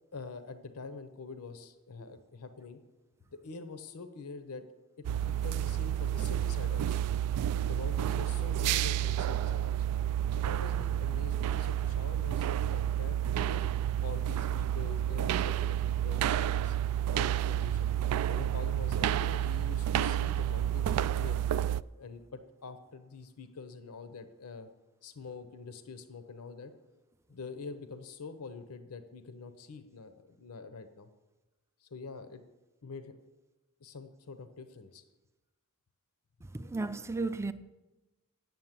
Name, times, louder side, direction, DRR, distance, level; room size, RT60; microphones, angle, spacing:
voice 1, 0.1-2.8 3.4-4.6 5.0-7.1 7.7-10.0 10.3-13.6 14.0-16.8 17.1-17.9 18.3-21.4 21.9-24.7 25.0-26.7 27.3-31.1 31.8-32.4 32.8-33.1 33.8-35.0, left 4 dB, 80° left, 0.8 m, -45 dB
sound 1, 5.0-21.8, right 11 dB, 90° right, 0.3 m, -30 dB
voice 2, 36.5-37.5, right 3 dB, 10° right, 0.4 m, -34 dB
9.4 x 7.1 x 7.4 m
head